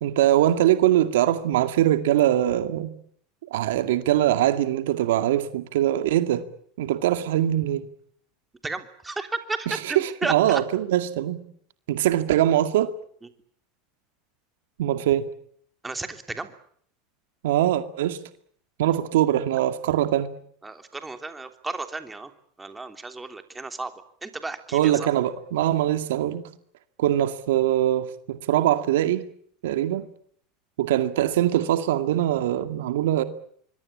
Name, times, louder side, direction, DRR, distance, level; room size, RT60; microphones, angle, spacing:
voice 1, 0.0-2.9 3.5-6.4 6.8-7.9 9.7-11.4 11.9-12.9 14.8-15.3 17.4-18.2 18.8-20.3 24.7-26.5 27.0-29.3 29.6-30.1 30.8-33.2, right 12 dB, 80° right, 2.2 m, -22 dB
voice 2, 8.6-10.6 15.8-16.5 20.6-22.3 22.6-23.9 24.2-25.1, right 3 dB, 15° right, 3.2 m, -33 dB
25.5 x 22.0 x 8.7 m
hypercardioid pair, 100°, 0 cm